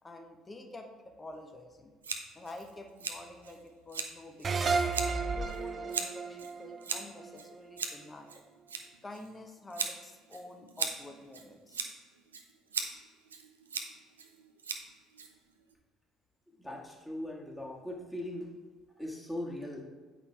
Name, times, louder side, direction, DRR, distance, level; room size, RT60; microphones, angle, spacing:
voice 1, 0.0-1.9 2.3-4.9 5.3-8.3 9.0-11.9, left 2 dB, 25° left, 4 dB, 1.2 m, -48 dB
Scissors, 2.0-15.7, right 5 dB, 85° right, 0.5 m, -40 dB
sound 1, 4.4-7.8, right 4 dB, 40° right, 0.6 m, -33 dB
voice 2, 16.6-18.5 19.0-19.9, left 1 dB, 5° left, -2 dB, 1.8 m, -39 dB
8.3 x 5.2 x 3.4 m, 1.4 s
figure-of-eight pair, 50°, 0 cm